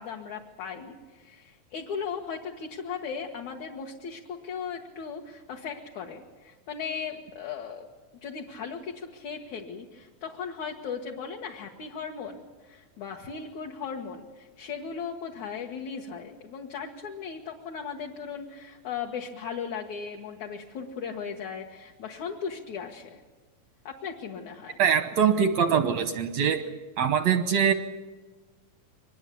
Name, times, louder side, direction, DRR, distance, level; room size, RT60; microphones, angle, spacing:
voice 1, 0.0-7.9 8.2-23.2 23.8-24.8, left 6 dB, 60° left, 0 dB, 2.6 m, -37 dB
voice 2, 24.8-26.6 27.0-27.7, right 7 dB, 70° right, 9 dB, 1.7 m, -23 dB
24.0 x 21.0 x 8.5 m, 1.2 s
omnidirectional pair, 4.4 m